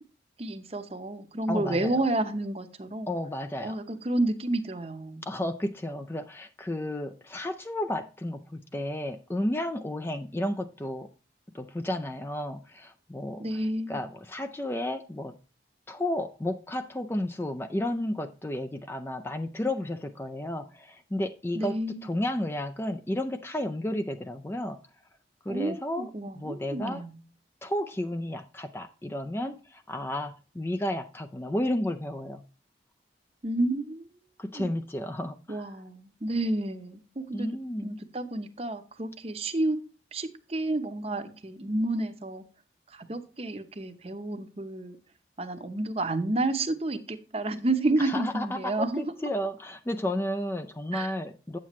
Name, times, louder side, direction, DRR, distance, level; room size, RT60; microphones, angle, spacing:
voice 1, 0.4-3.1 3.6-5.2 13.4-14.0 21.5-22.0 25.5-27.1 33.4-34.1 34.6-34.7 35.5-37.5 37.8-39.8 40.1-42.4 42.9-45.0 45.4-49.0 50.9-51.1, right 2 dB, 35° right, 0.8 m, -30 dB
voice 2, 1.5-2.0 3.1-3.8 5.2-11.1 11.5-15.3 15.9-24.8 25.4-27.0 27.6-32.4 34.4-35.8 37.3-38.0 41.1-41.3 48.0-51.6, left 1 dB, 15° left, 0.4 m, -32 dB
8.4 x 7.4 x 3.1 m
head